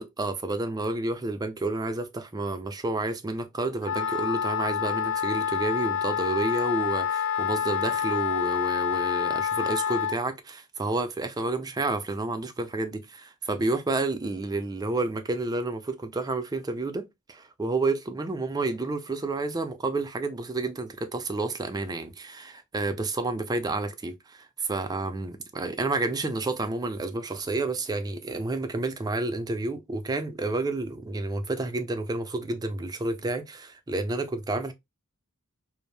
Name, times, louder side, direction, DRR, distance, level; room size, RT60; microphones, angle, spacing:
voice 1, 0.0-34.7, right 2 dB, 15° right, 0.4 m, -30 dB
Wind instrument woodwind instrument, 3.8-10.2, left 8 dB, 55° left, 0.4 m, -28 dB
2.6 x 2.0 x 3.1 m
head